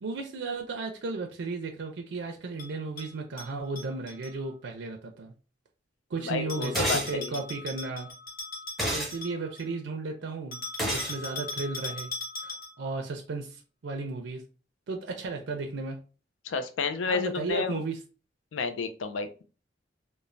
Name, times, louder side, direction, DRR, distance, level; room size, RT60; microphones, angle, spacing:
voice 1, 0.0-5.3 6.1-8.1 8.9-12.1 12.4-14.4 14.9-16.0 17.1-18.0, right 3 dB, 70° right, 3 dB, 0.4 m, -34 dB
Bell, 2.6-4.3 6.5-9.7 10.5-12.9, left 3 dB, 50° left, 1.0 m, -40 dB
voice 2, 6.2-7.3 16.4-17.8 18.5-19.4, left 4 dB, 80° left, 9 dB, 0.4 m, -31 dB
sound 1, 6.7-7.1 8.8-9.1 10.8-11.2, right 1 dB, ahead, 0.7 m, -29 dB
3.1 x 2.1 x 2.5 m, 0.34 s
head